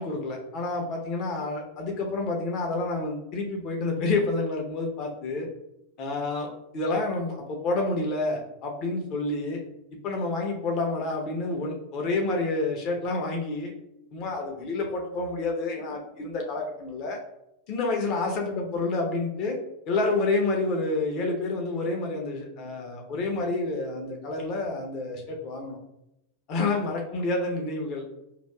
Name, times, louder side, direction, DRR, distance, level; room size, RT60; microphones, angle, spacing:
voice 1, 0.0-5.5 6.0-9.6 10.0-13.7 14.1-17.2 17.7-19.6 19.9-25.8 26.5-28.0, left 3 dB, 40° left, 1 dB, 0.8 m, -29 dB
5.1 x 2.5 x 2.3 m, 0.86 s
figure-of-eight pair, 90°, 0 cm